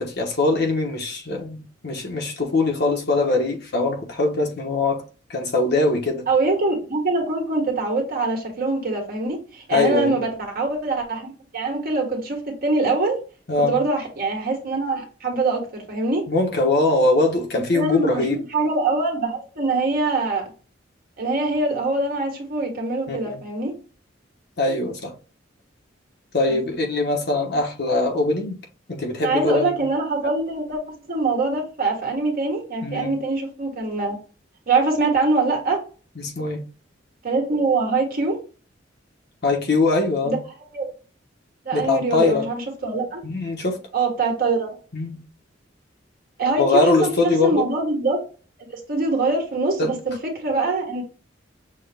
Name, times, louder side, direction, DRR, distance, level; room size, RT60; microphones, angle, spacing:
voice 1, 0.0-5.0 5.3-6.3 9.7-10.3 13.5-13.8 16.3-18.4 23.1-23.4 24.6-25.1 26.3-28.6 28.9-29.8 32.8-33.1 36.2-36.6 39.4-40.4 41.7-42.5 43.2-43.8 44.9-45.2 46.6-47.7 49.8-49.9, left 2 dB, 60° left, 1.2 m, -22 dB
voice 2, 6.3-13.2 13.6-16.2 17.7-20.5 21.2-23.7 26.5-26.6 29.2-30.8 31.1-34.2 34.7-35.8 37.2-38.4 40.2-40.4 40.7-40.9 41.6-43.2 43.9-44.7 46.4-48.2 48.7-51.0, right 3 dB, 50° right, 1.5 m, -23 dB
6.2 x 2.4 x 3.5 m
head